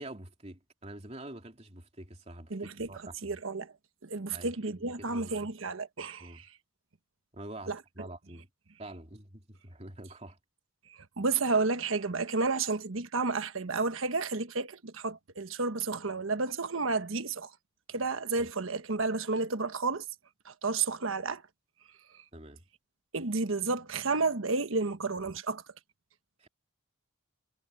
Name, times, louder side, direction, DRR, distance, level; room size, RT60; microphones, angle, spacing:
voice 1, 0.0-3.4 4.3-5.5 6.2-6.4 7.3-8.5 8.8-10.4 18.4-18.5 22.3-22.6 26.4-26.5, right 1 dB, 30° right, 3.2 m, -46 dB
voice 2, 2.5-2.9 3.2-3.7 4.0-6.5 7.7-7.8 11.2-17.5 17.9-20.0 20.4-21.4 23.1-25.6, right 3 dB, 85° right, 1.3 m, -31 dB
head